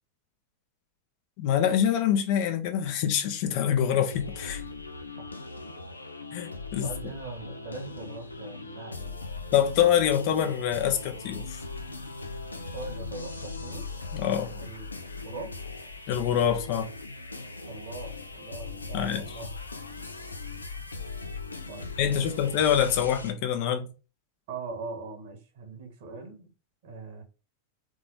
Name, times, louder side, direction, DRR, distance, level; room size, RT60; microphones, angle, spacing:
voice 1, 1.4-4.6 6.3-6.9 9.5-11.6 14.1-14.6 16.1-16.9 18.9-19.2 22.0-23.9, left 9 dB, 45° left, 0.8 m, -25 dB
sound 1, 4.1-23.3, left 3 dB, 80° left, 0.6 m, -39 dB
voice 2, 6.8-9.1 9.4-9.5 12.7-13.9 14.6-15.5 17.7-19.5 21.7-22.2 24.5-26.5 26.8-27.2, right 3 dB, 55° right, 1.6 m, -41 dB
3.9 x 3.6 x 3.2 m
figure-of-eight pair, 90°, 0 cm